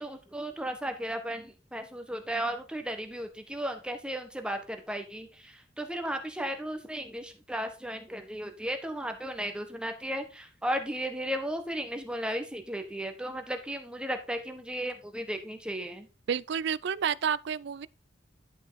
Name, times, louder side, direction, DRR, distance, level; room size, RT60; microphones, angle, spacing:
voice 1, 0.0-16.1, equal, 5° right, 1.5 m, -35 dB
voice 2, 16.3-17.9, right 7 dB, 70° right, 0.4 m, -30 dB
11.5 x 5.5 x 4.2 m
head